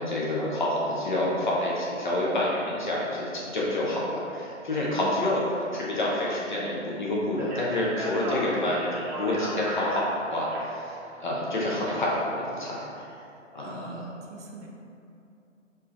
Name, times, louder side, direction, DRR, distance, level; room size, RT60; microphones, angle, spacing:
voice 1, 0.0-8.9 9.2-12.8 13.5-14.0, left 1 dB, 40° left, -5 dB, 0.6 m, -28 dB
voice 2, 4.9-5.3 13.6-14.7, right 1 dB, 65° right, -2 dB, 0.7 m, -41 dB
Speech, 7.3-11.9, equal, 25° right, 0.9 m, -36 dB
4.3 x 2.6 x 3.1 m, 2.7 s
figure-of-eight pair, 135°, 38 cm